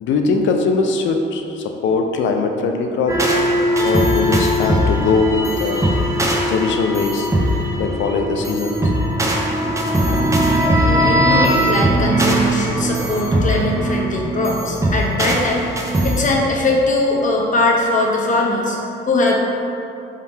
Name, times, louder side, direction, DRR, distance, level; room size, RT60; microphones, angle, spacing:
voice 1, 0.0-3.3 3.8-5.9 6.5-7.3 7.8-8.8 10.1-10.3, left 4 dB, 70° left, 4 dB, 0.4 m, -20 dB
sound 1, 3.1-16.3, right 1 dB, 15° right, 0.5 m, -19 dB
voice 2, 10.8-15.6 16.0-18.8 19.1-19.4, left 2 dB, 40° left, -1 dB, 0.7 m, -20 dB
3.7 x 2.7 x 4.2 m, 2.7 s
cardioid pair, 90°, 20 cm